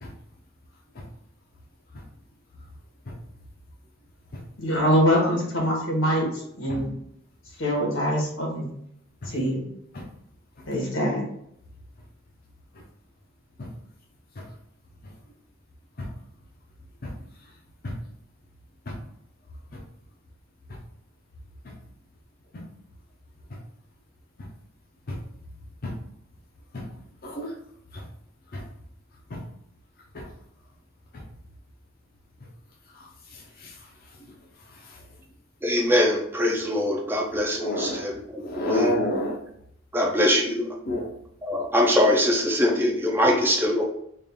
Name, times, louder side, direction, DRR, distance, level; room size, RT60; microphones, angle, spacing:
voice 1, 4.6-6.9 7.6-8.7 9.2-9.7 10.7-11.2, equal, 85° left, -1 dB, 1.3 m, -24 dB
voice 2, 17.0-17.5 17.8-18.0 18.9-19.0 19.7-19.8 20.7-20.8 21.6-21.7 22.5-22.7 23.5-23.6 24.4-24.5 25.1-25.2 25.8-26.0 26.7-26.9 27.2-27.6 27.9-28.1 28.5-28.6 29.3-29.4 30.1-30.3 31.1-31.2 32.9-35.1 37.6-38.1 38.4-39.4 40.9-41.1, left 1 dB, 50° left, -1 dB, 0.6 m, -32 dB
voice 3, 35.6-38.9 39.9-40.7 41.4-43.8, left 1 dB, 10° right, 0 dB, 0.4 m, -23 dB
3.4 x 2.4 x 3.6 m, 0.72 s
head